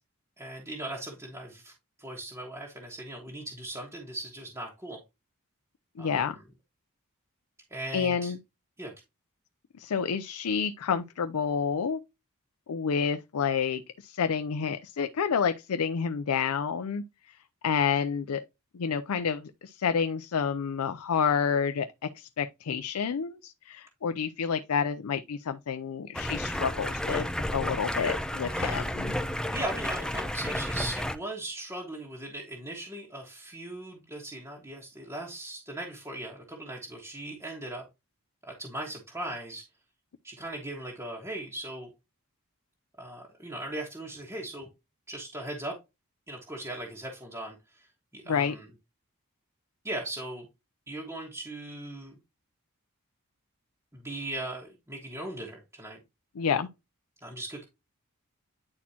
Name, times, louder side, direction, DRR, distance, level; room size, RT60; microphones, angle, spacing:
voice 1, 0.4-1.7 2.0-5.0 6.0-6.4 7.7-8.3 8.8-8.9 28.5-37.8 38.4-39.6 40.2-41.9 43.0-44.7 45.1-45.8 46.3-47.9 48.1-48.7 49.8-50.5 50.9-52.1 53.9-56.0 57.2-57.7, right 1 dB, 15° right, 1.4 m, -39 dB
voice 2, 6.0-6.4 7.9-8.4 9.8-12.0 12.7-17.0 17.6-18.4 18.7-27.3 27.5-29.1 48.3-48.5 56.4-56.7, left 6 dB, 75° left, 0.5 m, -29 dB
Stream, 26.1-31.2, left 1 dB, 5° left, 0.5 m, -32 dB
9.7 x 4.2 x 2.8 m
head